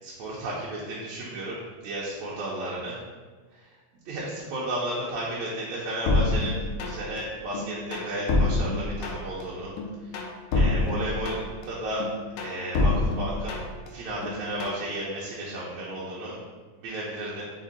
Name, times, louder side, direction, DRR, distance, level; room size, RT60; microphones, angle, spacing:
voice 1, 0.0-3.0 3.5-3.7 4.1-9.7 10.0-10.2 10.5-12.1 12.4-13.6 13.9-16.4 16.7-17.5, right 1 dB, 75° right, -6 dB, 1.9 m, -33 dB
sound 1, 6.1-7.2 7.5-9.4 9.8-11.6 12.0-13.9 14.2-14.8, left 3 dB, 90° left, 1.3 m, -26 dB
6.2 x 2.1 x 3.8 m, 1.4 s
omnidirectional pair, 3.3 m